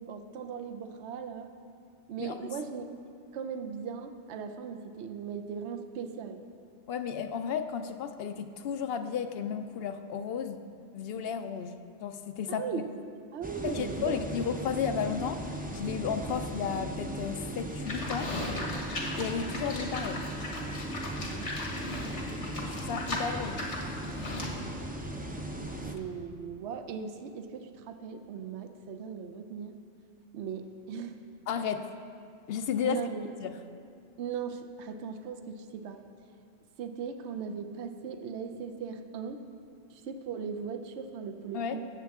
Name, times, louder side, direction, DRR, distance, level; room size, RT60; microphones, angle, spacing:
voice 1, 0.0-1.5 2.1-2.9 3.3-6.4 12.5-12.9 13.3-14.5 21.2-21.5 25.8-29.8 30.3-31.2 32.8-33.3 34.2-36.0 36.8-39.4 39.9-41.9, right 6 dB, 75° right, 7 dB, 0.9 m, -38 dB
voice 2, 2.2-2.5 6.9-10.6 10.9-12.8 13.6-15.4 15.7-18.3 19.2-20.3 22.6-23.6 31.5-31.9 32.5-33.1 33.4-33.6 41.5-41.8, left 7 dB, 65° left, 9 dB, 0.7 m, -33 dB
sound 1, 13.4-25.9, right 1 dB, 10° right, 0.4 m, -38 dB
Livestock farm animals working animals, 17.9-24.6, left 2 dB, 85° left, 1.8 m, -37 dB
16.0 x 7.5 x 3.5 m, 2.4 s
omnidirectional pair, 1.2 m